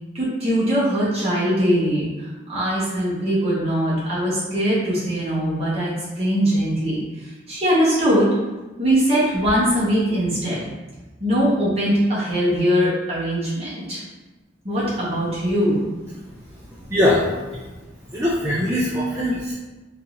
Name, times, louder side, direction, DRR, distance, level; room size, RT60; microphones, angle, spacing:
voice 1, 0.1-8.3 8.8-10.6 11.2-14.0 14.6-15.8, equal, 30° right, -9 dB, 1.5 m, -21 dB
voice 2, 16.8-17.6 18.1-19.5, left 1 dB, 15° right, -6 dB, 0.4 m, -21 dB
4.0 x 2.8 x 3.8 m, 1.1 s
head